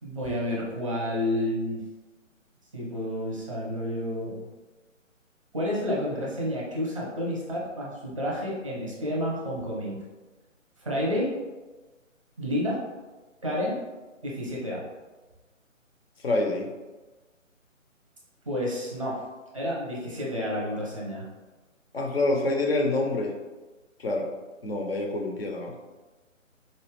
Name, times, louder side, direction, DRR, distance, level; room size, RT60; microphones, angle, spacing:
voice 1, 0.0-1.8 2.7-4.5 5.5-10.0 10.8-11.3 12.4-12.8 13.4-13.8 14.2-14.8 18.5-19.2 19.5-21.3, left 1 dB, 25° right, -4 dB, 0.6 m, -30 dB
voice 2, 16.2-16.7 21.9-23.3 24.0-24.3 24.6-25.8, left 2 dB, 50° left, 1 dB, 0.6 m, -26 dB
4.1 x 2.3 x 3.2 m, 1.2 s
figure-of-eight pair, 150°, 40 cm